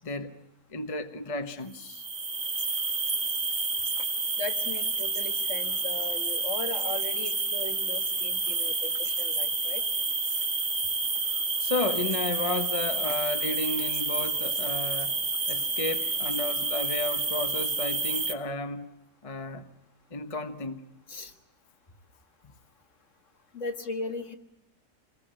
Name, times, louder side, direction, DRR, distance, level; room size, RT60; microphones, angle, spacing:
voice 1, 0.7-2.1 11.6-15.2 15.5-18.9 19.2-19.7 20.1-20.8, left 2 dB, 25° left, 1.2 m, -33 dB
sound 1, 1.8-18.3, right 3 dB, 45° right, 2.0 m, -29 dB
voice 2, 4.4-9.8 21.1-21.3 23.5-24.4, left 3 dB, 50° left, 2.0 m, -37 dB
27.0 x 21.0 x 8.9 m
omnidirectional pair, 1.7 m